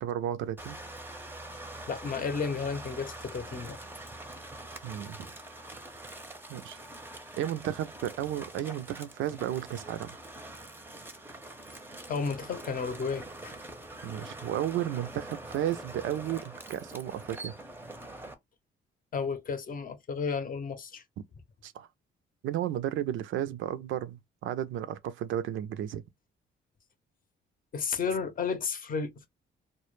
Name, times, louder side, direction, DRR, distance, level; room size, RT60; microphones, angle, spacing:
voice 1, 0.0-0.8 4.8-5.2 6.5-6.8 7.4-10.2 14.0-17.5 21.6-21.9 22.4-26.0, right 11 dB, 75° right, 0.4 m, -33 dB
sound 1, 0.6-18.3, right 2 dB, 10° right, 0.5 m, -44 dB
voice 2, 1.9-3.8 12.1-13.6 19.1-21.0 27.7-29.3, left 5 dB, 45° left, 0.6 m, -32 dB
2.1 x 2.0 x 3.0 m
cardioid pair, 90°, 20 cm